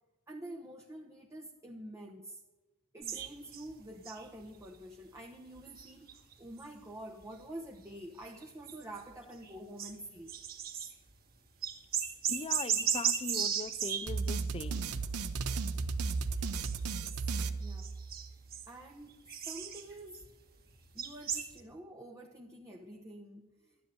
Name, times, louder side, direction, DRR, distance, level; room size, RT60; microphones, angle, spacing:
voice 1, 0.3-2.4 2.9-6.1 6.4-10.3 17.6-17.9 18.7-20.3 20.9-23.7, right 1 dB, 15° right, 0.9 m, -47 dB
sound 1, 3.0-4.8 5.6-6.7 6.9-7.2 7.7-7.9 8.4-9.1 9.4-11.2 11.5-14.3 15.1-15.7 16.0-16.2 16.6-17.3 17.6-20.3 20.7-21.6, right 8 dB, 45° right, 1.9 m, -36 dB
voice 2, 12.3-15.0, left 4 dB, 25° left, 0.4 m, -41 dB
sound 2, 14.1-18.3, right 4 dB, 85° right, 0.9 m, -35 dB
12.5 x 10.0 x 9.4 m
head